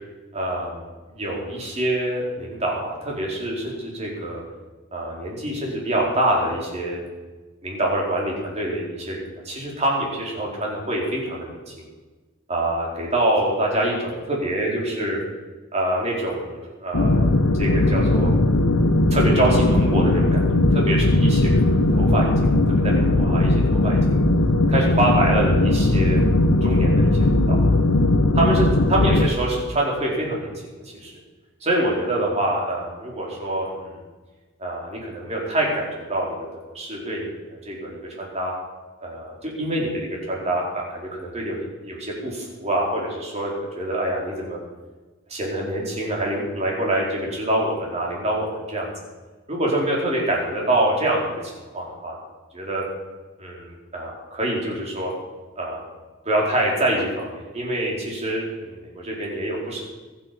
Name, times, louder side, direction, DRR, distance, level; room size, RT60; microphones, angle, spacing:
voice 1, 0.3-4.4 4.9-7.0 7.6-11.7 12.5-15.2 15.7-18.3 19.1-20.4 20.7-24.2 24.7-26.3 26.6-27.8 28.3-30.5 31.0-31.1 31.6-34.0 34.6-36.4 36.6-38.5 39.0-44.6 45.3-48.9 49.5-52.2 52.5-52.8 53.4-55.1 55.6-55.9 56.2-59.8, right 1 dB, 30° right, -3 dB, 4.5 m, -25 dB
sound 1, 16.9-29.3, left 2 dB, 75° left, 1.1 m, -18 dB
22.5 x 8.7 x 6.1 m, 1.3 s
head